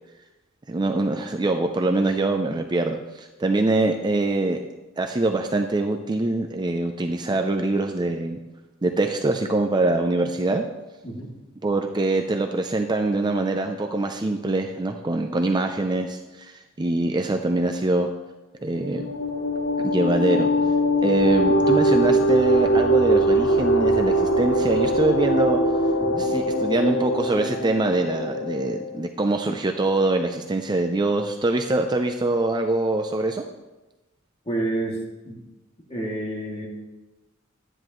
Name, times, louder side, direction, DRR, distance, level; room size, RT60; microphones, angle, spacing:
voice 1, 0.7-4.6 5.0-8.4 8.8-10.6 11.6-18.1 18.6-19.1 19.8-20.5 21.0-25.6 26.2-33.4, right 2 dB, 20° right, 5 dB, 0.5 m, -24 dB
sound 1, 18.7-29.0, right 1 dB, 75° left, 0.7 m, -22 dB
voice 2, 34.5-35.0 35.2-35.4 35.9-36.7, right 2 dB, 30° left, -3 dB, 2.4 m, -29 dB
12.0 x 9.8 x 3.1 m, 1.1 s
head